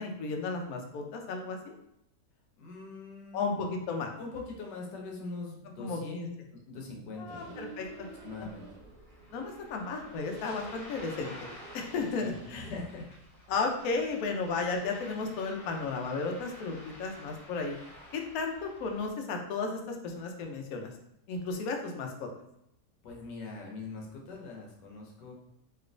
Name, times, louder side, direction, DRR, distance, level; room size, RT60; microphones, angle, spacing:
voice 1, 0.0-1.7 3.3-4.1 5.8-6.3 7.2-8.1 9.3-11.3 11.7-12.7 13.5-17.8 18.1-20.9 21.3-22.3, left 4 dB, 70° left, 2 dB, 0.9 m, -34 dB
voice 2, 2.6-3.8 4.2-7.5 8.2-8.7 12.2-13.1 23.0-25.3, left 3 dB, 85° left, -1 dB, 1.4 m, -42 dB
sound 1, 7.3-12.7, right 3 dB, 70° right, 1.3 m, -50 dB
Ocean, 7.8-19.1, left 1 dB, 45° left, 0.7 m, -51 dB
3.1 x 2.9 x 2.5 m, 0.80 s
omnidirectional pair, 1.8 m